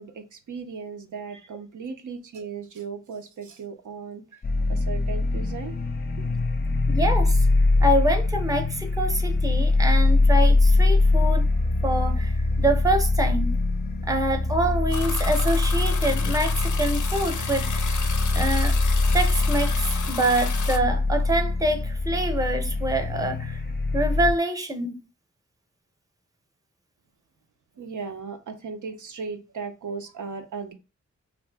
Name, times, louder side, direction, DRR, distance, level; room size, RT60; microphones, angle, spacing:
voice 1, 0.0-4.2 4.7-5.8 6.2-6.3 27.8-30.7, right 5 dB, 90° right, 0.5 m, -36 dB
sound 1, 4.4-24.3, left 2 dB, 35° left, 0.4 m, -23 dB
voice 2, 6.9-7.5 7.8-11.5 11.8-13.6 14.1-18.8 19.1-23.6 23.9-25.0, right 1 dB, 10° right, 0.6 m, -26 dB
sound 2, 14.9-20.8, left 6 dB, 85° left, 0.5 m, -33 dB
2.6 x 2.5 x 3.3 m
wide cardioid pair, 70°, 29 cm